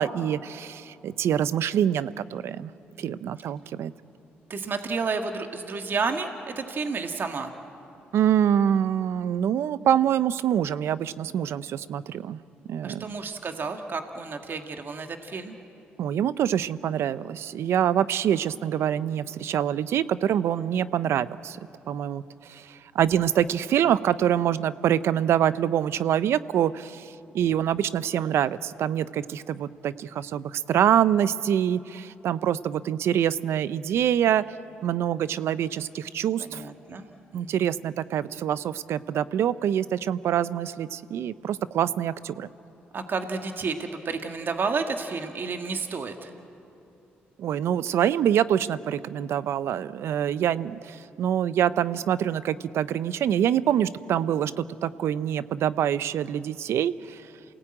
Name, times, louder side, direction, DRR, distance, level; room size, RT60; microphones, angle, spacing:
voice 1, 0.0-2.7 3.0-3.9 8.1-12.4 12.7-13.0 16.0-21.6 21.9-22.2 22.5-34.4 34.8-36.6 37.3-42.5 47.4-57.3, right 10 dB, 75° right, 16 dB, 0.6 m, -25 dB
voice 2, 4.5-7.5 12.8-15.5 36.4-37.0 37.3-37.7 42.9-46.3, right 4 dB, 50° right, 5 dB, 1.7 m, -31 dB
28.5 x 18.5 x 8.9 m, 2.8 s
supercardioid pair, 60°, 4 cm